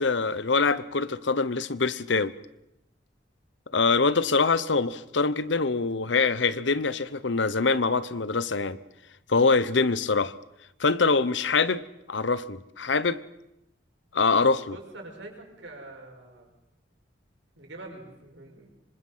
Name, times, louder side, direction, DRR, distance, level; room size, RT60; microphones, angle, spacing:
voice 1, 0.0-2.3 3.7-8.8 9.3-10.3 10.8-11.8 12.1-13.2 14.1-14.8, left 4 dB, 85° left, 16 dB, 1.0 m, -24 dB
voice 2, 14.7-16.5 17.6-18.7, right 2 dB, 85° right, 1 dB, 6.5 m, -44 dB
26.5 x 25.5 x 5.7 m, 0.84 s
head